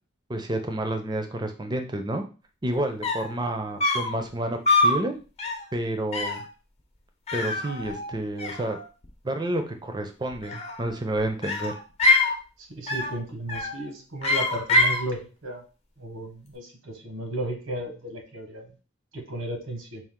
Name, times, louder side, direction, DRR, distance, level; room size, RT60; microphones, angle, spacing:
voice 1, 0.3-2.2 2.6-5.1 5.7-6.4 7.3-8.8 9.2-11.7, right 1 dB, 20° right, 6 dB, 0.5 m, -29 dB
sound 1, 2.7-2.8 3.0-3.4 3.8-4.2 4.7-5.0 5.4-5.7 6.1-6.5 7.3-8.1 8.4-9.1 10.3-11.0 11.4-12.4 12.9-13.2 13.5-13.8 14.2-15.0, left 2 dB, 30° left, 0.6 m, -24 dB
voice 2, 12.6-15.6 16.0-18.7 19.1-20.0, right 1 dB, 90° right, 3 dB, 1.2 m, -34 dB
4.6 x 2.4 x 3.6 m, 0.34 s
head